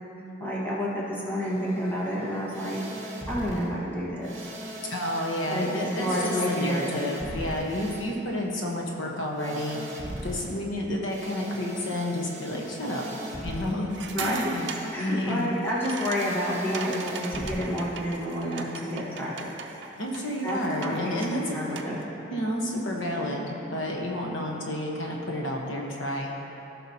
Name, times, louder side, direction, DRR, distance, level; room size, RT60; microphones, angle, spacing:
voice 1, 0.4-2.8 3.3-4.4 5.5-6.9 14.1-14.5 14.9-19.5 20.4-22.0, equal, 10° left, -6 dB, 1.3 m, -29 dB
sound 1, 1.4-3.7 4.2-10.5 11.1-13.7 14.5-15.0 16.1-17.6, right 1 dB, 40° right, 1.3 m, -40 dB
voice 2, 4.9-13.1 13.4-14.7 15.0-15.5 20.0-21.6 22.3-26.3, left 1 dB, 80° left, -1 dB, 1.1 m, -30 dB
sound 2, 13.9-22.0, right 5 dB, 65° right, 0.6 m, -40 dB
15.0 x 6.0 x 2.8 m, 3.0 s
head